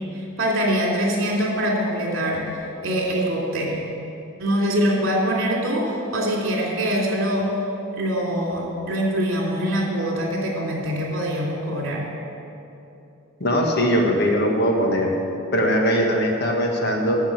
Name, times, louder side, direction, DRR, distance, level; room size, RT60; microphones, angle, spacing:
voice 1, 0.1-2.4 2.8-3.8 4.4-7.4 8.0-12.0, equal, 60° right, -3 dB, 3.0 m, -23 dB
voice 2, 13.4-15.1 15.5-17.2, equal, 50° left, 1 dB, 1.5 m, -20 dB
10.5 x 7.1 x 8.6 m, 2.9 s
head